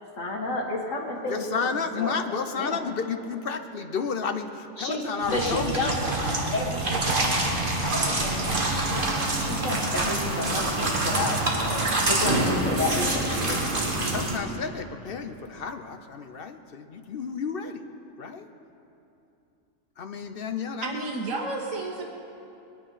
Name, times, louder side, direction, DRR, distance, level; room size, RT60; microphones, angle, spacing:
voice 1, 0.2-2.2 2.6-2.8 4.8-5.0 5.3-6.0 6.5-7.2 7.8-13.9, left 2 dB, 70° left, -1 dB, 2.3 m, -31 dB
voice 2, 1.3-5.9 6.2-6.5 8.0-8.1 14.1-17.8 18.2-18.5 20.0-21.1, left 5 dB, 50° left, 7 dB, 0.8 m, -32 dB
sound 1, 5.2-14.4, right 2 dB, 40° right, 1.7 m, -26 dB
voice 3, 20.8-22.0, right 2 dB, 80° right, -2 dB, 1.6 m, -31 dB
21.0 x 10.5 x 5.7 m, 2.8 s
omnidirectional pair, 1.4 m